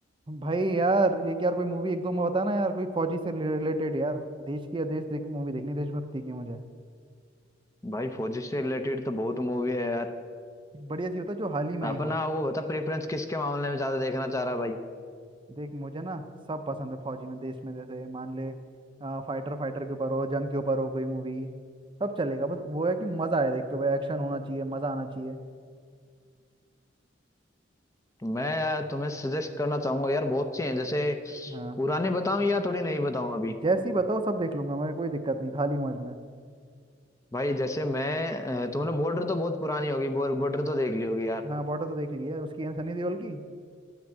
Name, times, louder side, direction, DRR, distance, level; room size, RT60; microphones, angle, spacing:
voice 1, 0.3-6.6 10.7-12.2 15.5-18.5 19.0-21.6 22.0-25.4 31.5-31.8 33.5-36.2 41.4-43.4, right 2 dB, 25° right, 8 dB, 0.6 m, -30 dB
voice 2, 7.8-10.1 11.8-14.8 28.2-33.6 37.3-41.4, left 1 dB, 15° left, 7 dB, 0.6 m, -29 dB
10.5 x 6.0 x 8.8 m, 2.1 s
head